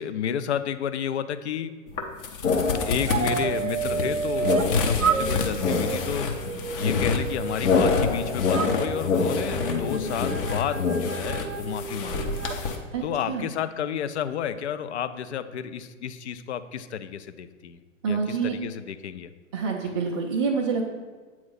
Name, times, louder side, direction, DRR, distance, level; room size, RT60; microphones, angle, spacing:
voice 1, 0.0-1.7 2.7-6.3 6.8-12.3 13.0-17.8 18.1-19.3, left 9 dB, 60° left, 11 dB, 0.5 m, -31 dB
sound 1, 1.9-12.8, left 4 dB, 45° left, 0.9 m, -31 dB
sound 2, 2.4-3.3 3.8-11.1, left 4 dB, 75° left, 0.9 m, -27 dB
sound 3, 3.1-4.7 5.0-8.1 8.5-12.6, right 6 dB, 80° right, 0.6 m, -31 dB
voice 2, 12.9-13.5 18.0-18.5 19.5-20.8, right 5 dB, 20° right, -4 dB, 0.3 m, -27 dB
8.2 x 3.1 x 5.6 m, 1.4 s
figure-of-eight pair, 105°, 39 cm